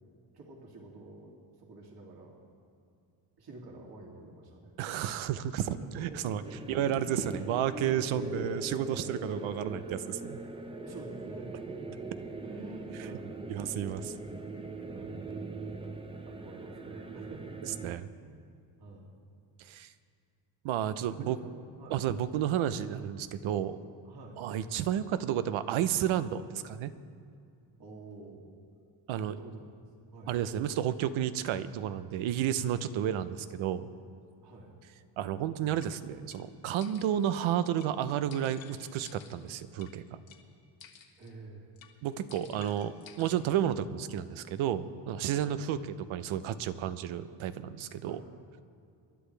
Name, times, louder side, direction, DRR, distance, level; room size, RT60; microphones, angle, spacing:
voice 1, 0.3-1.3 1.6-2.4 3.4-4.8 5.6-7.5 9.3-9.5 10.7-12.0 12.4-13.5 14.9-15.7 16.2-17.7 18.2-18.5 18.8-19.2 20.7-22.0 24.0-24.4 27.8-28.5 29.1-29.6 30.1-30.3 34.4-34.7 41.2-41.7 43.3-43.4 45.5-45.6 48.0-48.3, right 2 dB, 50° right, -1 dB, 2.8 m, -48 dB
voice 2, 4.8-6.4 6.7-10.4 13.5-14.1 17.8-18.1 19.6-19.9 20.6-21.4 21.9-23.8 24.4-26.9 29.1-29.3 30.3-33.9 35.2-40.2 42.0-45.8 46.1-48.2, right 10 dB, 85° right, 12 dB, 0.8 m, -31 dB
sound 1, 6.4-18.0, right 2 dB, 10° right, 0.5 m, -41 dB
sound 2, 35.8-35.9 36.3-36.4 36.8-37.3 37.8-37.9 38.3-39.9 40.3-40.4 40.8-41.3 41.8-41.9 42.3-43.6, left 8 dB, 75° left, 1.6 m, -54 dB
27.0 x 11.5 x 3.4 m, 2.4 s
cardioid pair, 130°, 47 cm